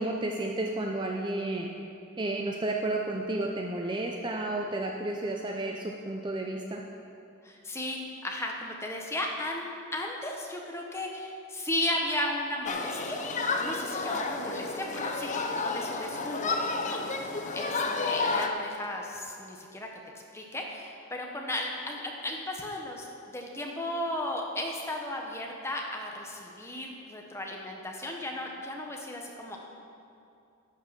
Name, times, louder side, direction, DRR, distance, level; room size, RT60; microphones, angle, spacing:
voice 1, 0.0-1.7 2.2-6.8, right 2 dB, 20° right, 1 dB, 0.5 m, -32 dB
voice 2, 7.4-9.6 9.9-13.2 13.6-19.9 20.3-29.6, left 1 dB, 10° left, 0 dB, 1.0 m, -35 dB
Human group actions, 12.7-18.5, left 3 dB, 35° left, 0.6 m, -31 dB
11.0 x 6.6 x 6.7 m, 2.6 s
head